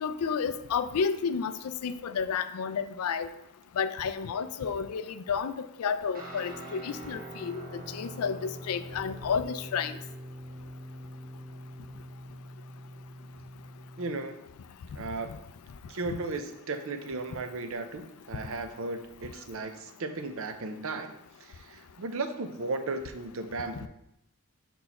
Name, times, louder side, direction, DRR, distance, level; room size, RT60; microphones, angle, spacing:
voice 1, 0.0-3.3 3.8-10.0, left 6 dB, 80° left, 12 dB, 0.4 m, -31 dB
Guitar, 6.1-14.3, right 1 dB, 45° right, 1.3 m, -44 dB
voice 2, 14.0-14.4 15.0-15.4 15.9-21.2 21.4-23.9, right 3 dB, 65° right, 8 dB, 0.6 m, -35 dB
5.4 x 4.5 x 4.2 m, 0.83 s
head